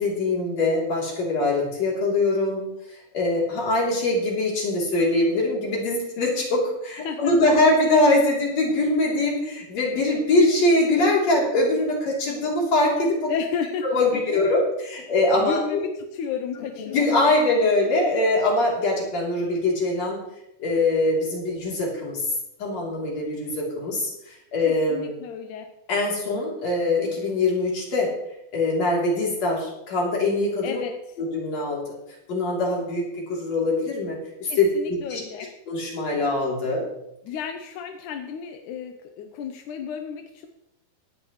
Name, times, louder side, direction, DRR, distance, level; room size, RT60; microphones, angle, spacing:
voice 1, 0.0-2.7 3.1-13.3 13.9-15.6 16.8-20.2 20.6-22.2 22.6-25.1 25.9-28.1 28.5-30.8 31.2-31.8 32.3-35.2 35.7-36.8, left 2 dB, 45° left, -3 dB, 4.4 m, -23 dB
voice 2, 7.0-7.5 13.3-13.9 14.3-14.4 15.3-17.2 17.5-17.7 24.7-25.7 26.3-26.4 30.6-31.2 34.4-35.5 37.2-40.5, left 6 dB, 70° left, 5 dB, 2.0 m, -33 dB
18.0 x 11.0 x 3.2 m, 0.85 s
omnidirectional pair, 4.2 m